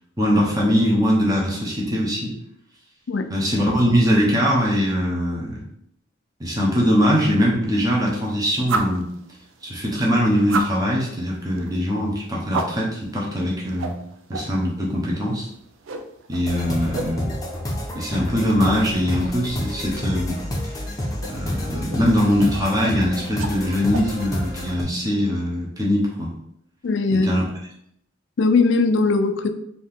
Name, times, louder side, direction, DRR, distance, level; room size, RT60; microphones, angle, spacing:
voice 1, 0.2-2.4 3.3-5.6 6.4-9.1 9.6-14.0 14.3-15.5 16.3-17.3 17.9-20.4 21.3-26.3 27.1-27.4, equal, 20° right, -3 dB, 1.0 m, -21 dB
sound 1, 7.7-24.8, right 3 dB, 85° right, 0.5 m, -36 dB
sound 2, 16.4-24.8, left 1 dB, 20° left, 0.8 m, -29 dB
voice 2, 26.8-27.3 28.4-29.5, left 3 dB, 65° left, 8 dB, 0.4 m, -19 dB
4.3 x 2.8 x 3.6 m, 0.73 s
head